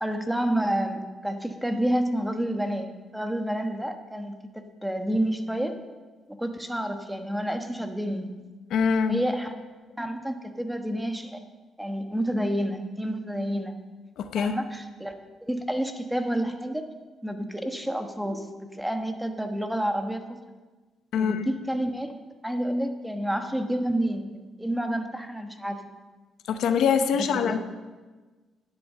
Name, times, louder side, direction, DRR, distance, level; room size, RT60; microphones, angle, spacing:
voice 1, 0.0-2.9 3.1-5.8 6.4-8.5 9.1-9.5 10.0-11.4 11.8-13.7 14.3-15.1 15.4-16.8 17.2-20.4 21.2-25.8 27.1-27.6, right 1 dB, 5° right, 6 dB, 1.2 m, -29 dB
voice 2, 8.7-9.2 14.2-14.5 21.1-21.4 26.5-27.6, left 6 dB, 75° left, 8 dB, 0.8 m, -24 dB
10.5 x 7.8 x 7.4 m, 1.3 s
cardioid pair, 90°, 0 cm